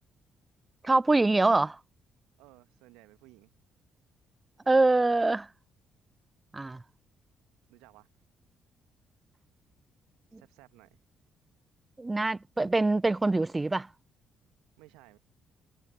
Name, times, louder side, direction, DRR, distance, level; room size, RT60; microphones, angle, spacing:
voice 1, 0.8-1.8 4.7-5.5 6.5-6.8 10.3-10.4 12.0-13.9, right 2 dB, 20° right, 0.5 m, -24 dB
voice 2, 2.4-3.5 7.7-8.1 10.3-11.0 14.8-15.2, right 21 dB, 70° right, 1.5 m, -57 dB
figure-of-eight pair, 45°, 0 cm